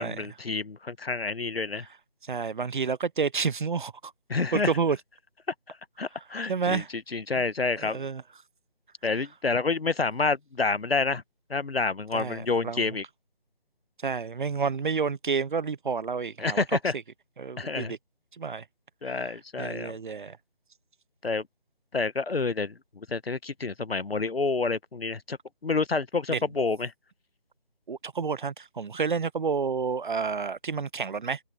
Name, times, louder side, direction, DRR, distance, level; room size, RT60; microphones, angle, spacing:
voice 1, 0.0-1.9 4.3-4.7 5.7-8.1 9.0-11.2 11.5-13.0 16.4-16.9 17.6-17.9 19.0-20.0 21.2-21.4 21.9-25.4 25.6-26.9, left 4 dB, 90° left, 1.1 m, -28 dB
voice 2, 2.2-4.1 4.5-5.0 6.5-6.9 7.3-7.4 7.8-8.2 12.1-12.8 14.0-16.6 17.4-18.0 18.4-18.6 19.2-20.4 26.3-26.4 27.9-31.4, right 5 dB, 60° right, 0.5 m, -30 dB
figure-of-eight pair, 165°, 29 cm